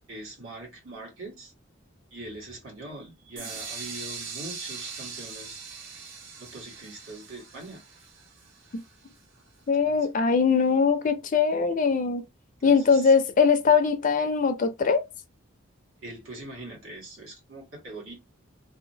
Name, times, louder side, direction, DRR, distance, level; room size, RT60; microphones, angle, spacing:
voice 1, 0.1-1.5 2.1-5.6 6.4-7.8 9.8-10.0 12.6-13.1 16.0-18.1, right 1 dB, 80° right, 1.5 m, -42 dB
sound 1, 3.4-9.2, right 5 dB, 65° right, 0.9 m, -41 dB
voice 2, 9.7-12.2 12.6-15.0, left 5 dB, 40° left, 0.4 m, -21 dB
2.8 x 2.1 x 2.7 m
head